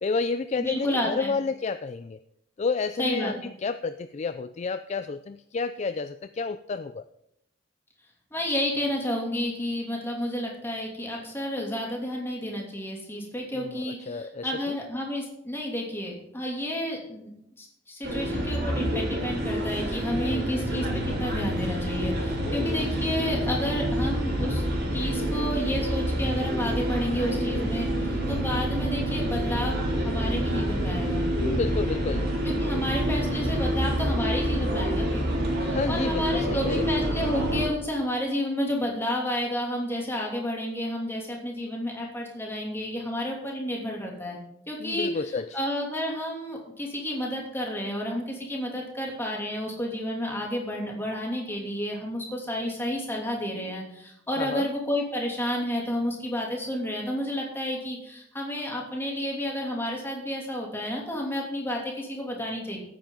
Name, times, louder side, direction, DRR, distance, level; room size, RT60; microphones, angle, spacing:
voice 1, 0.0-2.2 2.6-7.0 13.5-14.8 20.1-20.7 22.4-22.8 31.4-32.3 35.7-36.9 44.8-45.6 54.4-54.7, left 4 dB, 35° left, 11 dB, 0.4 m, -31 dB
voice 2, 0.6-1.4 3.0-3.5 8.3-24.6 24.9-31.2 32.4-35.2 35.6-44.4 44.7-45.1 45.5-62.8, equal, 15° left, -1 dB, 2.9 m, -31 dB
sound 1, 18.0-37.7, equal, 55° right, 3.4 m, -27 dB
15.5 x 9.0 x 3.9 m, 0.79 s
head